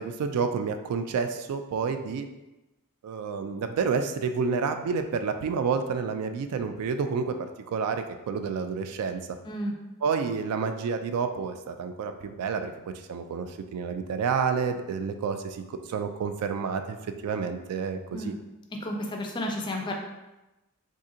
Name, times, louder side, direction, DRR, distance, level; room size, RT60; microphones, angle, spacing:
voice 1, 0.0-2.3 3.0-9.4 10.0-17.0 17.2-18.3, right 5 dB, 80° right, 11 dB, 0.3 m, -29 dB
voice 2, 18.8-19.9, left 1 dB, 20° left, 2 dB, 0.3 m, -31 dB
2.7 x 2.5 x 3.7 m, 1.0 s
head